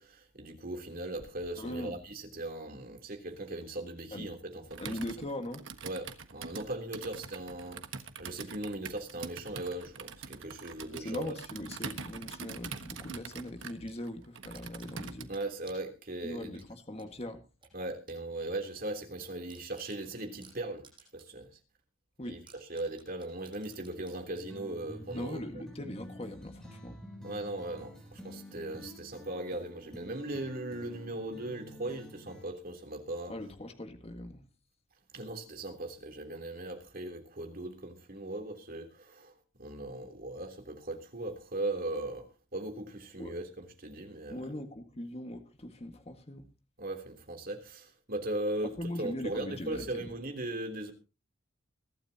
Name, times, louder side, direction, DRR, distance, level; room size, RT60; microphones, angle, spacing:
voice 1, 0.0-5.0 5.8-7.8 8.2-11.3 15.3-16.6 17.7-20.9 21.1-21.5 22.2-22.4 22.7-25.4 27.2-33.3 35.1-39.3 39.6-44.4 46.8-48.7 49.0-50.9, right 2 dB, 45° right, 3.2 m, -38 dB
voice 2, 1.5-2.0 4.1-4.3 4.8-5.6 10.9-15.3 16.2-17.4 22.2-22.4 25.1-27.0 33.3-34.4 43.2-43.4 44.3-46.4 48.8-50.1, left 1 dB, 30° left, 1.7 m, -40 dB
Computer keyboard, 4.7-15.5, right 5 dB, 60° right, 1.4 m, -44 dB
sound 1, 13.6-14.0 14.5-15.9 16.6-18.2 18.6-18.7 19.1-19.2 19.5-21.4 21.8-21.9 22.5-24.2, right 5 dB, 25° right, 7.7 m, -57 dB
sound 2, 24.3-32.5, left 1 dB, 5° left, 3.6 m, -48 dB
23.0 x 12.5 x 2.8 m
head